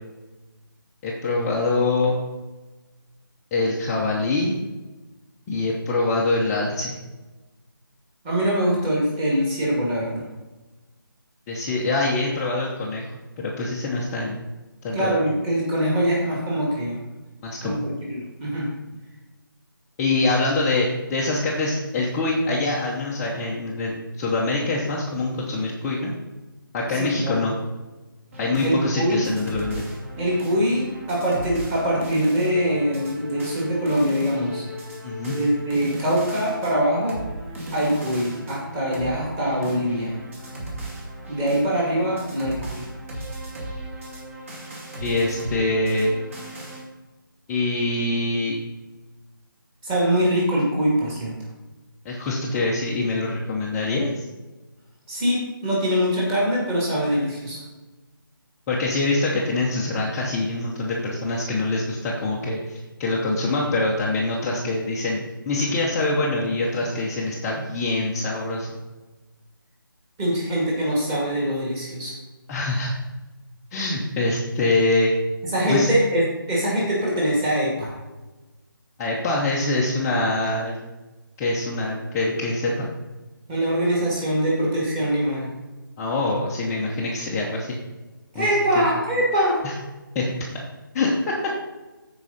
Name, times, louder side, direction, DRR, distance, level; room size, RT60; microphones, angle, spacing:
voice 1, 1.0-2.2 3.5-4.6 5.5-6.9 11.5-13.1 13.4-14.4 14.8-15.1 17.4-17.9 20.0-26.1 26.7-27.5 28.4-29.9 35.0-35.4 45.0-46.1 47.5-48.5 52.0-54.2 58.7-65.2 65.5-68.7 72.5-72.9 73.7-75.1 75.7-75.9 79.0-80.8 81.4-82.9 86.0-87.7 88.3-88.5 88.7-88.8 89.6-89.7 90.1-90.3 90.9-91.5, left 2 dB, 10° left, -5 dB, 0.8 m, -24 dB
voice 2, 8.2-10.2 14.9-17.0 17.6-18.7 26.9-27.4 28.6-29.3 30.2-34.6 35.3-37.2 37.7-40.1 41.3-42.8 49.8-51.3 55.1-57.6 70.2-72.1 75.5-77.9 83.5-85.5 88.3-89.6, equal, 15° right, -4 dB, 2.2 m, -23 dB
sound 1, 28.3-46.8, right 1 dB, 35° right, 2.4 m, -36 dB
14.0 x 4.9 x 4.1 m, 1.1 s
figure-of-eight pair, 160°, 12 cm